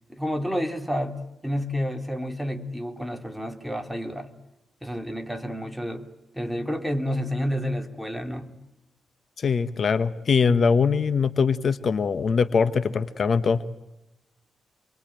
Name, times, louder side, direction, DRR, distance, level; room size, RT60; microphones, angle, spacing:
voice 1, 0.1-4.3 4.8-6.1 6.3-8.5, equal, ahead, 5 dB, 3.4 m, -30 dB
voice 2, 9.4-13.7, left 5 dB, 55° left, 12 dB, 1.1 m, -22 dB
28.5 x 22.0 x 9.0 m, 0.94 s
cardioid pair, 90°, 0 cm